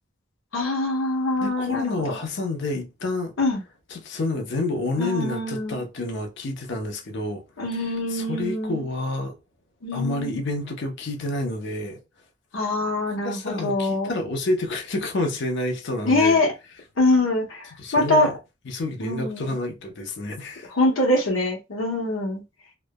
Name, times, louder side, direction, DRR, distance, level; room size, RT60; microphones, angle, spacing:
voice 1, 0.5-2.1 3.4-3.6 5.0-5.8 7.6-8.8 9.8-10.4 12.5-14.1 16.0-16.5 17.0-18.3 19.0-19.5 20.7-22.4, left 2 dB, 90° left, 1.0 m, -24 dB
voice 2, 1.4-3.3 3.9-7.4 8.1-9.4 9.9-12.0 13.2-16.4 17.8-18.3 18.7-20.7, left 2 dB, 65° left, 0.6 m, -29 dB
3.0 x 2.0 x 2.2 m
head